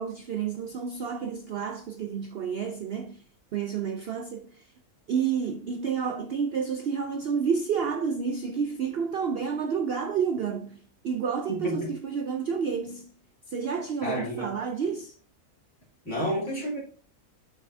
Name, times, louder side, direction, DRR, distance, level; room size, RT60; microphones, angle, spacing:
voice 1, 0.0-3.2 3.5-4.7 5.1-13.1 13.5-15.2, right 6 dB, 70° right, 0.5 m, -30 dB
voice 2, 11.5-11.9 14.0-14.5 16.0-16.8, equal, 50° left, 3.0 m, -30 dB
7.5 x 5.5 x 2.6 m
omnidirectional pair, 1.6 m